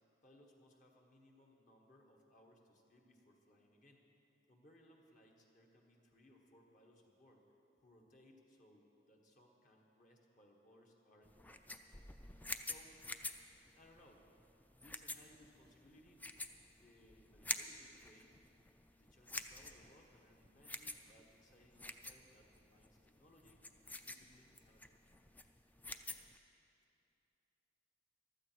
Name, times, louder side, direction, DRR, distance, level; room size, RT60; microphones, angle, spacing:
voice 1, 0.2-4.0 4.5-7.4 7.8-11.6 12.6-13.0 13.7-14.2 14.8-16.2 16.8-18.3 18.9-23.6 24.0-24.9 25.4-25.5, left 1 dB, 45° left, 0 dB, 1.5 m, -66 dB
sound 1, 11.2-26.4, left 2 dB, 10° left, 0.4 m, -48 dB
14.5 x 12.5 x 4.6 m, 2.8 s
head